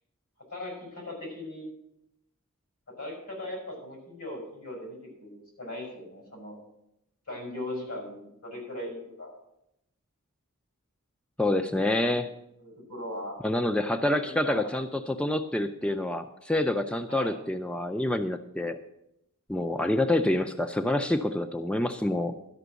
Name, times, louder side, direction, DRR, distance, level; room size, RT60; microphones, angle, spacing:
voice 1, 0.5-1.7 2.9-6.6 7.3-9.4 12.6-13.4 14.2-14.7 17.1-17.4 19.8-20.0, left 1 dB, 75° left, 0 dB, 5.9 m, -39 dB
voice 2, 11.4-12.3 13.4-18.8 19.5-22.3, left 1 dB, 5° left, 7 dB, 0.4 m, -27 dB
12.5 x 6.0 x 8.0 m, 0.83 s
head